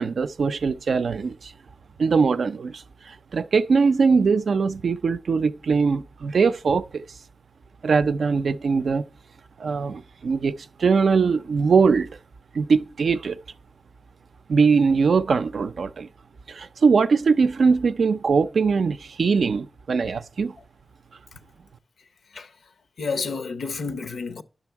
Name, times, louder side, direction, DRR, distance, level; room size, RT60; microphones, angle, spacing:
voice 1, 0.0-1.5 2.0-7.0 7.8-9.0 9.6-12.2 12.5-13.4 14.5-16.1 16.5-20.6, right 5 dB, 80° right, 0.4 m, -21 dB
voice 2, 23.0-24.4, left 4 dB, 90° left, 0.7 m, -30 dB
10.5 x 6.2 x 4.5 m
cardioid pair, 55°, 0 cm